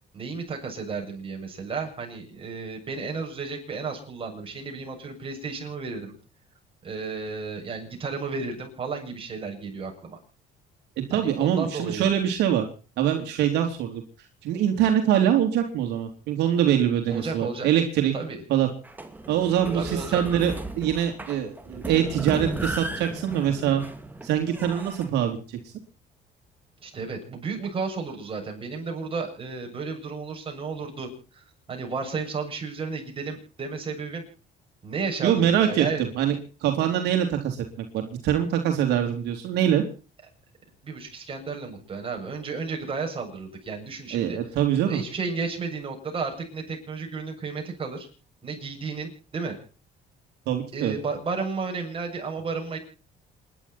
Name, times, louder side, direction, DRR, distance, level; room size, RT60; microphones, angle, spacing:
voice 1, 0.1-6.1 6.8-10.2 11.1-12.2 17.1-17.7 18.1-18.4 19.7-20.2 26.8-31.1 31.3-34.3 34.8-36.1 40.8-44.4 44.9-48.1 48.4-49.6 50.7-52.8, right 4 dB, 30° right, 2 dB, 7.4 m, -33 dB
voice 2, 11.0-12.7 13.0-14.0 14.4-18.1 18.5-18.7 19.3-23.8 24.2-25.6 35.2-36.3 36.6-39.8 44.1-45.0 50.5-50.9, right 10 dB, 80° right, 4 dB, 3.1 m, -24 dB
sound 1, 18.8-25.1, right 2 dB, 10° right, 2.6 m, -35 dB
28.0 x 11.5 x 4.3 m, 0.37 s
cardioid pair, 110°, 17 cm